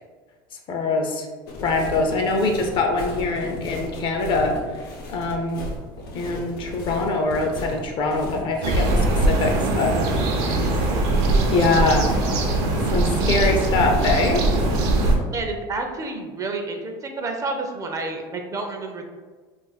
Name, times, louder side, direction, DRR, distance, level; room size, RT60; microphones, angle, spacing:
voice 1, 0.7-1.3 1.6-4.6 5.1-5.7 6.1-10.0 10.4-10.9 11.5-12.2 12.9-14.4, left 3 dB, 45° left, 3 dB, 0.5 m, -23 dB
sound 1, 1.5-15.2, left 1 dB, 85° left, 0.9 m, -35 dB
sound 2, 8.6-15.2, right 2 dB, 70° right, 0.6 m, -21 dB
voice 2, 15.3-19.1, right 3 dB, 30° right, 3 dB, 0.5 m, -29 dB
2.5 x 2.4 x 4.0 m, 1.4 s
supercardioid pair, 115°, 12 cm